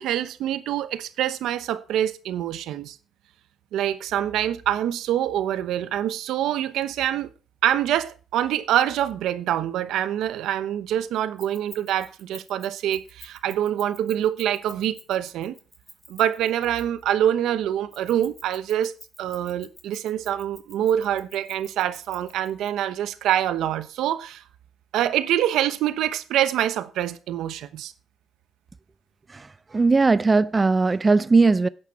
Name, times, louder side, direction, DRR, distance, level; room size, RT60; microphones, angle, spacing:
voice 1, 0.0-3.0 3.7-7.3 7.6-15.5 16.1-18.9 19.2-24.4 24.9-27.9, right 11 dB, 85° right, 0.9 m, -25 dB
Keys jangling, 11.4-17.1 17.9-22.7, equal, 5° left, 2.5 m, -47 dB
voice 2, 29.3-31.7, right 3 dB, 25° right, 0.4 m, -19 dB
10.5 x 8.9 x 4.8 m
cardioid pair, 90°, 0 cm